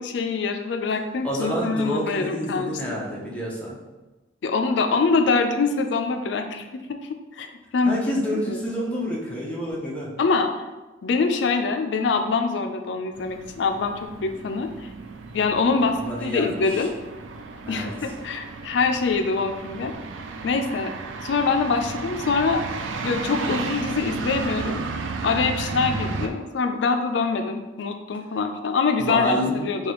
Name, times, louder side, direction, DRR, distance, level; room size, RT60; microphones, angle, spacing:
voice 1, 0.0-3.0 4.4-6.9 7.3-8.0 8.3-8.6 10.2-10.6 11.0-14.9 15.3-16.9 17.7-19.9 20.4-20.9 21.2-22.7 23.0-24.8 25.2-29.9, left 4 dB, 75° left, 6 dB, 0.4 m, -24 dB
voice 2, 1.2-3.8 7.9-10.1 16.0-16.9 17.6-17.9 29.0-29.7, equal, 5° left, -5 dB, 0.7 m, -28 dB
sound 1, 13.1-26.3, right 4 dB, 85° right, 0.4 m, -33 dB
4.7 x 2.3 x 3.0 m, 1.1 s
head